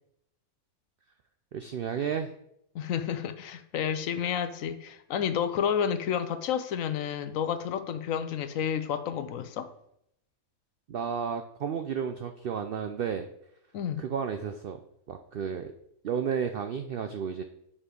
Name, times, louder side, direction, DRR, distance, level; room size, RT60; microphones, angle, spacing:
voice 1, 1.5-2.3 10.9-13.3 14.0-14.8 15.1-15.7 16.0-17.4, right 7 dB, 80° right, 0.5 m, -32 dB
voice 2, 2.7-9.7 13.7-14.0, left 8 dB, 70° left, 1.0 m, -30 dB
7.1 x 4.3 x 5.1 m
omnidirectional pair, 1.5 m